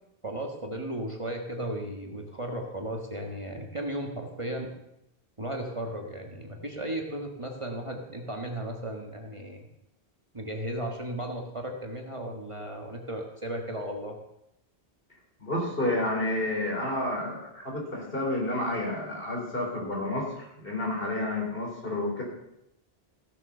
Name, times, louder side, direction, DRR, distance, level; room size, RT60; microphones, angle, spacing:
voice 1, 0.2-4.7 5.4-9.7 10.3-14.2, right 1 dB, 30° right, 1 dB, 1.6 m, -35 dB
voice 2, 15.4-20.3 20.6-22.2, left 1 dB, 60° left, -2 dB, 4.2 m, -30 dB
15.5 x 7.3 x 6.7 m, 0.84 s
omnidirectional pair, 1.1 m